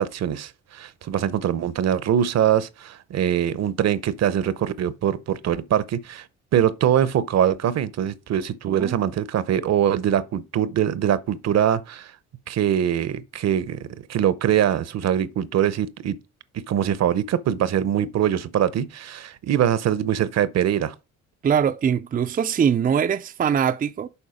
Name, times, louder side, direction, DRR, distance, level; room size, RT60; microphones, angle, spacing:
voice 1, 0.0-6.2 6.5-12.1 12.5-16.2 16.5-20.9, right 10 dB, 60° right, 0.7 m, -23 dB
voice 2, 21.4-24.1, right 7 dB, 30° right, 0.4 m, -22 dB
7.1 x 4.4 x 5.0 m
cardioid pair, 90°, 30 cm